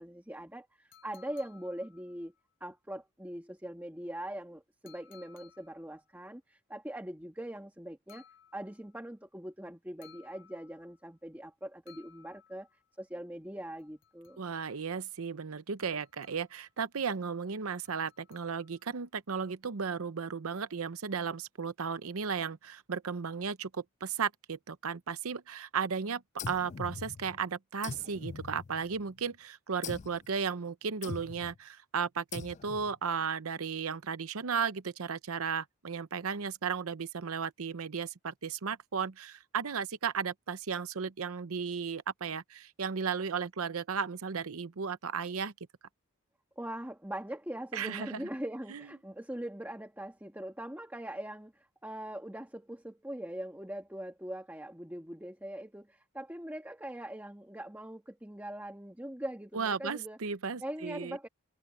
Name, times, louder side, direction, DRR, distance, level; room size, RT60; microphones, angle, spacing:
voice 1, 0.0-2.3 2.6-8.2 8.5-12.7 13.0-14.4 46.6-60.2 60.6-61.3, right 1 dB, 10° right, 1.4 m, -42 dB
sound 1, 0.9-2.4 4.9-6.0 8.1-9.0 10.0-11.0 11.9-12.9 13.8-14.8 15.8-16.7 17.8-18.9, left 9 dB, 60° left, 3.1 m, -60 dB
voice 2, 14.4-45.5 47.7-48.2 48.7-48.9 59.5-61.3, right 6 dB, 75° right, 0.7 m, -35 dB
sound 2, 26.4-27.4 27.8-29.1 29.8-30.3 31.0-31.6 32.3-32.9, left 6 dB, 30° left, 0.3 m, -42 dB
head